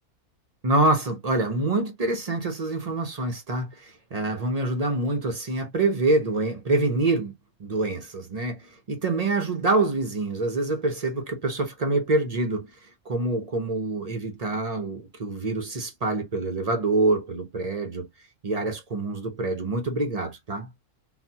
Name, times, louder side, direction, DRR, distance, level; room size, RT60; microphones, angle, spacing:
voice 1, 0.6-7.3 7.6-18.1 18.4-20.7, right 2 dB, 45° right, 0.5 m, -26 dB
3.9 x 2.1 x 2.7 m
omnidirectional pair, 1.6 m